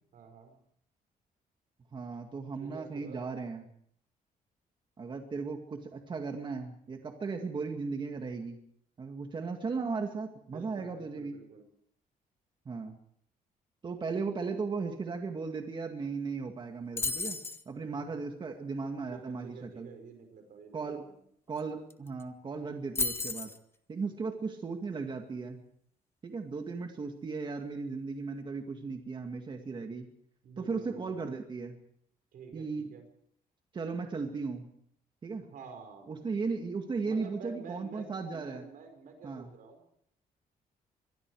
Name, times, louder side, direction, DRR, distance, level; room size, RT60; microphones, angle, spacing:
voice 1, 0.1-0.5 2.6-3.2 10.5-11.7 17.9-18.2 19.1-21.1 30.4-31.2 32.3-33.0 35.5-36.1 37.0-39.8, right 5 dB, 65° right, 6 dB, 5.2 m, -49 dB
voice 2, 1.9-3.7 5.0-8.6 9.0-11.4 12.7-13.0 13.8-19.9 20.7-21.1 21.5-23.5 23.9-25.6 26.2-30.1 30.6-31.8 32.5-32.9 33.7-34.7 35.2-35.5 36.1-38.6 39.2-39.5, right 4 dB, 30° right, 4 dB, 2.2 m, -36 dB
sound 1, 17.0-17.6 21.6-21.7 21.9-22.2 22.9-23.6, left 3 dB, 15° left, 1.2 m, -33 dB
24.0 x 22.5 x 4.9 m, 0.67 s
cardioid pair, 155°, 15 cm